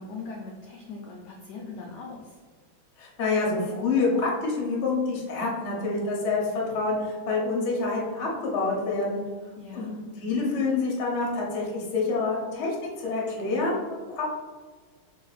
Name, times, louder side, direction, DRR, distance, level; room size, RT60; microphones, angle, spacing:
voice 1, 0.0-2.4 9.6-10.1, left 3 dB, 75° left, 0 dB, 0.9 m, -40 dB
voice 2, 3.0-9.2 9.7-9.9 10.2-14.2, left 3 dB, 50° left, -3 dB, 0.9 m, -27 dB
3.1 x 2.7 x 3.9 m, 1.4 s
omnidirectional pair, 2.3 m